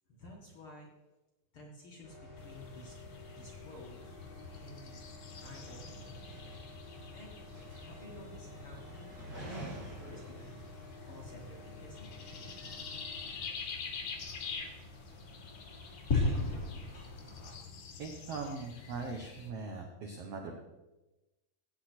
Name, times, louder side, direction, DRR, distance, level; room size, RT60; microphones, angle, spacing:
voice 1, 0.1-0.9 1.5-3.0 3.3-4.2 4.5-5.0 5.4-6.2 7.1-7.3 7.8-10.6 11.0-12.6 13.4-13.5 14.2-14.4, left 1 dB, 50° left, -2 dB, 1.8 m, -53 dB
sound 1, 2.0-17.5, left 3 dB, 25° left, 3.4 m, -42 dB
sound 2, 2.4-19.5, left 5 dB, 75° left, 1.1 m, -47 dB
sound 3, 5.3-13.0, right 1 dB, 45° right, 5.7 m, -50 dB
voice 2, 18.0-20.5, right 4 dB, 75° right, 2 dB, 1.4 m, -40 dB
16.5 x 8.1 x 4.4 m, 1.1 s
omnidirectional pair, 4.3 m